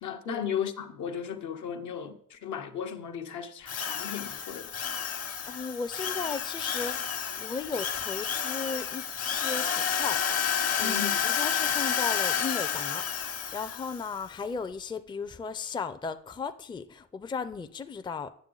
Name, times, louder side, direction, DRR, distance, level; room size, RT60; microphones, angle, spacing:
voice 1, 0.0-4.7 10.8-11.2, left 8 dB, 75° left, 0.9 m, -35 dB
Drill, 3.7-14.1, left 8 dB, 55° left, 1.1 m, -30 dB
voice 2, 5.5-10.2 10.8-18.3, left 5 dB, 15° left, 0.4 m, -36 dB
8.8 x 6.9 x 3.8 m
cardioid pair, 90°, 30 cm